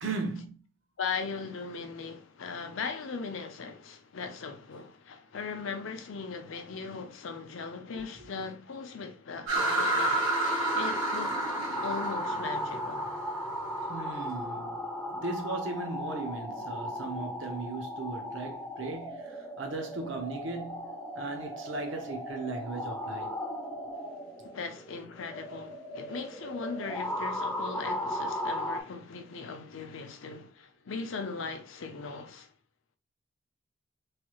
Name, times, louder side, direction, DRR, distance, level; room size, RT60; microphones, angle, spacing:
voice 1, 0.0-0.6 13.9-23.4, right 3 dB, 60° right, 0.7 m, -37 dB
voice 2, 1.0-11.4 11.8-13.1 24.5-32.5, left 4 dB, 65° left, 0.5 m, -39 dB
sound 1, 9.5-28.8, left 1 dB, 5° left, 0.5 m, -36 dB
sound 2, 9.5-14.0, right 2 dB, 90° right, 1.5 m, -31 dB
3.2 x 2.3 x 3.0 m
head